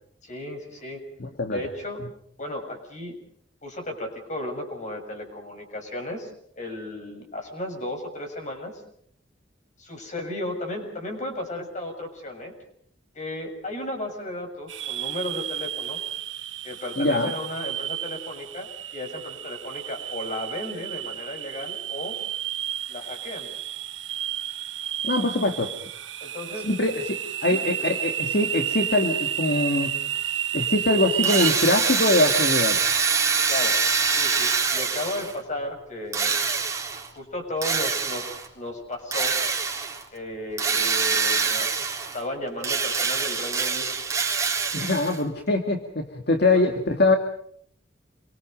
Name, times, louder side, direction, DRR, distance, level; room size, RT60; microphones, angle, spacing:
voice 1, 0.2-1.0 1.5-2.0 2.4-3.2 3.6-6.3 6.6-8.8 9.8-12.5 13.1-16.0 16.6-22.1 22.9-23.5 26.2-26.7 27.4-27.6 33.5-33.8 34.1-36.4 37.1-38.3 38.5-39.4 40.1-44.0 46.5-46.7, left 1 dB, 40° left, 3 dB, 6.9 m, -34 dB
voice 2, 1.2-1.6 17.0-17.3 25.0-25.7 26.6-30.0 30.5-32.8 44.7-47.2, left 2 dB, 60° left, 4 dB, 2.2 m, -23 dB
sound 1, 14.7-31.5, right 10 dB, 85° right, 1.2 m, -31 dB
Drill, 31.2-35.4 36.1-37.1 37.6-38.5 39.1-40.0 40.6-42.2 42.6-45.2, right 5 dB, 15° right, 3.8 m, -24 dB
28.5 x 24.0 x 5.3 m, 0.66 s
head